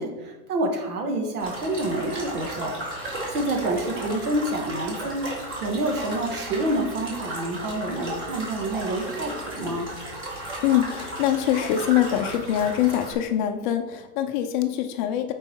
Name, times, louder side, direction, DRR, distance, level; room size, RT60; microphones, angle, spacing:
voice 1, 0.0-2.7 3.3-9.9, right 1 dB, 70° right, 3 dB, 1.9 m, -28 dB
sound 1, 1.4-13.1, right 1 dB, 25° right, 2.5 m, -34 dB
voice 2, 10.6-15.3, left 11 dB, 35° left, 6 dB, 0.5 m, -24 dB
8.3 x 4.7 x 4.5 m, 1.1 s
hypercardioid pair, 125°, 47 cm